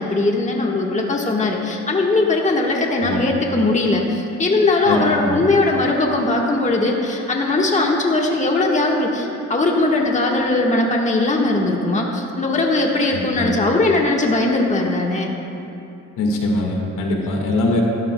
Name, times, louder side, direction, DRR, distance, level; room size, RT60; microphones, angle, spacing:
voice 1, 0.0-15.3, left 2 dB, 25° left, -1 dB, 1.4 m, -19 dB
voice 2, 4.8-5.5 13.1-13.6 16.2-17.8, left 2 dB, 85° left, 0 dB, 1.7 m, -22 dB
16.0 x 13.0 x 2.2 m, 2.8 s
cardioid pair, 90°, 30 cm